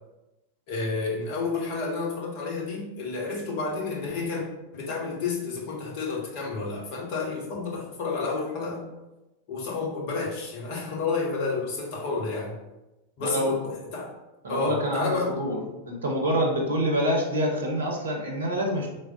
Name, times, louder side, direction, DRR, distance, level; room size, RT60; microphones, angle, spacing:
voice 1, 0.7-4.5 4.7-8.9 9.5-12.6 13.2-14.1 14.5-15.4, left 4 dB, 45° left, -1 dB, 0.8 m, -30 dB
voice 2, 13.2-13.5 14.4-15.6 15.9-18.9, equal, 70° right, 0 dB, 0.6 m, -26 dB
3.4 x 2.0 x 3.7 m, 1.0 s
figure-of-eight pair, 90°, 0 cm